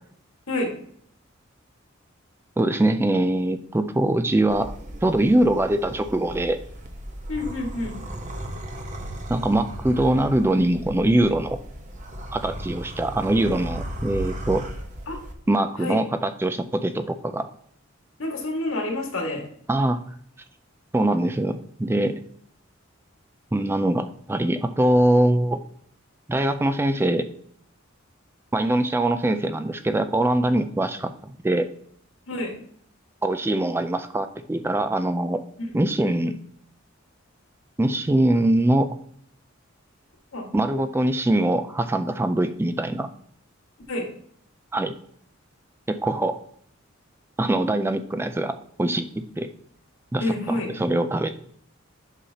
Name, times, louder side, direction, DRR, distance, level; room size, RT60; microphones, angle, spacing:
voice 1, 2.6-4.7 5.0-6.6 9.3-11.6 12.3-14.7 15.5-17.5 19.7-20.0 20.9-22.1 23.5-25.6 26.3-27.3 28.5-31.7 33.2-35.4 35.7-36.4 37.8-38.9 40.5-43.1 44.7-44.9 45.9-46.4 47.4-49.5 50.1-51.3, right 1 dB, 10° right, 10 dB, 0.3 m, -23 dB
sound 1, 4.5-15.3, right 1 dB, 40° right, 1.0 m, -36 dB
voice 2, 7.3-8.0 15.1-15.2 15.8-16.0 18.2-19.5 32.3-32.5 40.3-40.5 43.9-44.1 50.2-50.7, left 2 dB, 80° left, 1 dB, 1.9 m, -28 dB
8.1 x 5.6 x 2.8 m, 0.63 s
head